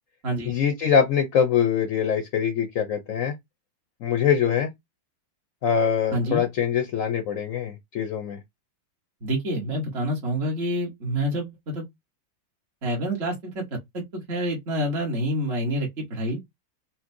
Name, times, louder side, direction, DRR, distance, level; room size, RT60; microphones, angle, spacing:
voice 1, 0.4-3.3 4.0-4.7 5.6-8.4, left 7 dB, 70° left, 0.7 m, -23 dB
voice 2, 6.1-6.4 9.2-11.8 12.8-13.6 13.9-16.4, right 1 dB, 40° right, 1.1 m, -27 dB
4.3 x 2.1 x 2.6 m
omnidirectional pair, 2.1 m